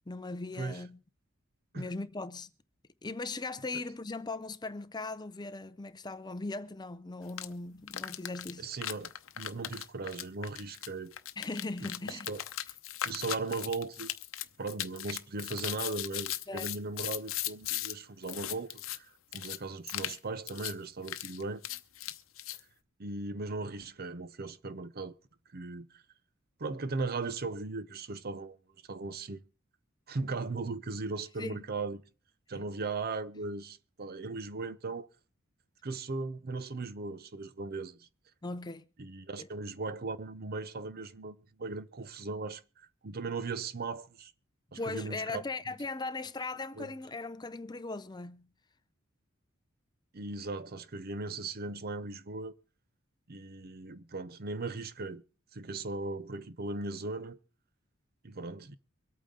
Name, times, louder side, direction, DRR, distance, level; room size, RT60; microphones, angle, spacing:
voice 1, 0.1-1.0 1.7-2.5 3.0-8.7 11.4-12.3 16.5-16.7 31.4-31.6 32.5-32.7 38.4-38.9 39.4-39.5 44.7-48.5, left 3 dB, 20° left, 0.6 m, -39 dB
sound 1, 7.3-7.5 7.9-17.9 18.2-19.0 19.3-19.6 19.9-20.2 20.5-20.7 21.0-22.6, left 12 dB, 70° left, 0.8 m, -38 dB
voice 2, 8.6-9.1 9.4-11.1 11.8-12.4 13.0-14.1 14.6-19.1 19.3-21.6 23.0-25.1 25.5-26.0 26.6-28.6 28.9-29.4 30.1-32.0 32.5-35.1 35.8-38.1 39.0-44.3 44.7-45.4 46.8-46.9 50.1-52.5 53.3-55.2 55.5-57.4 58.2-58.8, right 3 dB, 45° right, 0.7 m, -38 dB
24.5 x 8.8 x 3.8 m
head